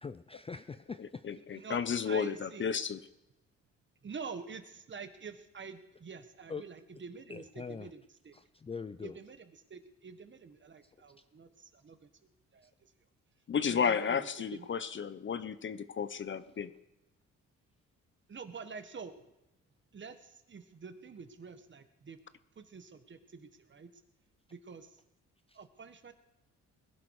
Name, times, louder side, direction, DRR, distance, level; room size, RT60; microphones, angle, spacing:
voice 1, 0.0-1.7 6.5-6.6 7.3-7.9 8.3-9.2 25.5-25.6, left 5 dB, 20° left, 12 dB, 0.5 m, -43 dB
voice 2, 1.0-3.0 13.5-16.7, left 6 dB, 40° left, 14 dB, 0.8 m, -33 dB
voice 3, 2.0-2.7 4.0-8.4 9.0-12.9 13.7-14.7 18.3-19.1 19.9-22.2 22.5-23.9 24.5-25.0 25.5-26.1, right 5 dB, 40° right, 9 dB, 1.6 m, -47 dB
20.5 x 11.0 x 4.9 m, 0.93 s
cardioid pair, 90°, 30 cm